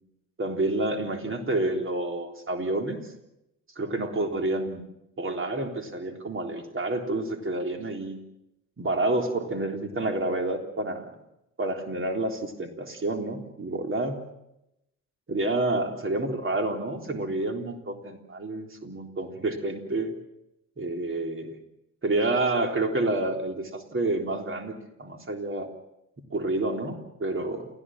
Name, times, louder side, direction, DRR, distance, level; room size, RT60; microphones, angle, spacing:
voice 1, 0.4-3.0 3.8-4.8 5.2-8.2 8.8-11.2 11.6-14.2 15.3-20.1 20.8-21.6 22.0-24.7 25.0-25.7 26.3-27.7, right 2 dB, 30° right, 5 dB, 3.7 m, -29 dB
29.0 x 15.5 x 7.5 m, 0.85 s
figure-of-eight pair, 50°, 43 cm